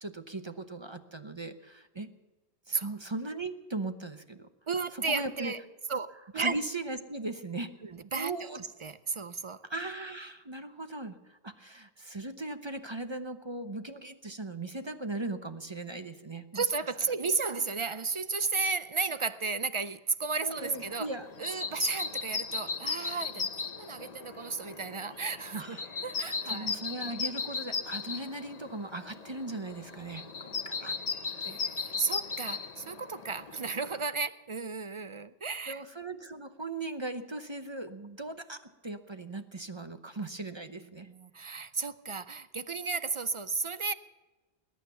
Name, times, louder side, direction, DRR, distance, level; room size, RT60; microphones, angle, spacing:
voice 1, 0.0-2.1 2.7-4.5 4.9-5.5 6.4-7.7 8.1-8.6 9.7-16.6 20.4-21.6 25.6-25.8 26.5-31.0 31.4-31.6 35.7-41.1, right 2 dB, 30° right, 9 dB, 0.8 m, -38 dB
voice 2, 4.7-5.6 5.9-6.6 7.8-9.6 16.5-21.1 21.4-26.7 32.0-35.8 40.9-43.9, right 4 dB, 45° right, 14 dB, 0.4 m, -33 dB
sound 1, 20.6-34.1, left 5 dB, 40° left, 0.9 m, -37 dB
20.5 x 9.4 x 6.9 m, 1.2 s
omnidirectional pair, 1.1 m